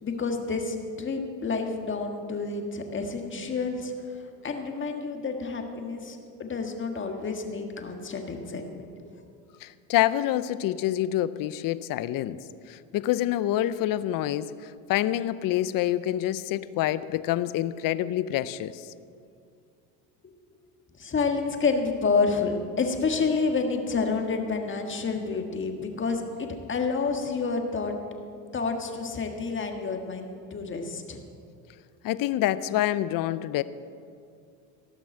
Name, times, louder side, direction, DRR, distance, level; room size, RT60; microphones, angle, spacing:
voice 1, 0.0-9.1 21.0-27.9 28.5-31.2, left 4 dB, 30° left, 4 dB, 1.6 m, -29 dB
voice 2, 9.6-18.9 32.0-33.6, left 13 dB, 50° left, 16 dB, 0.6 m, -27 dB
17.0 x 6.0 x 7.8 m, 2.4 s
supercardioid pair, 100°, 42 cm